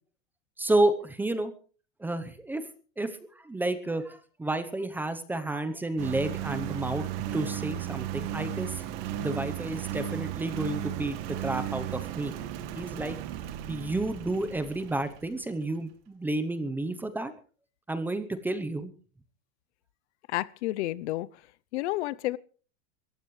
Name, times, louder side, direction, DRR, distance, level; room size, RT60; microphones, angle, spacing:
voice 1, 0.6-1.5 2.0-2.7 3.0-8.8 9.2-12.3 12.7-13.2 13.7-17.3 17.9-18.9, right 2 dB, 5° right, 0.8 m, -31 dB
Engine, 6.0-15.4, right 11 dB, 45° right, 2.0 m, -35 dB
voice 2, 20.3-21.3 21.7-22.4, left 17 dB, 55° left, 0.7 m, -30 dB
27.0 x 15.0 x 3.2 m
supercardioid pair, 170°, 40 cm